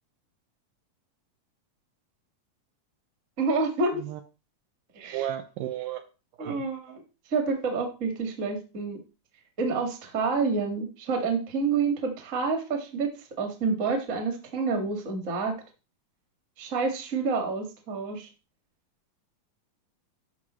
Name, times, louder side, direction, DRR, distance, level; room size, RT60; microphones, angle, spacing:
voice 1, 3.4-4.0 4.9-5.3 6.4-7.0 7.3-9.0 9.6-13.1 13.4-15.5 16.6-18.3, right 4 dB, 40° right, 4 dB, 1.1 m, -28 dB
voice 2, 5.1-6.0 6.4-6.7, right 12 dB, 80° right, 8 dB, 2.0 m, -33 dB
11.0 x 6.1 x 3.1 m, 0.32 s
omnidirectional pair, 4.2 m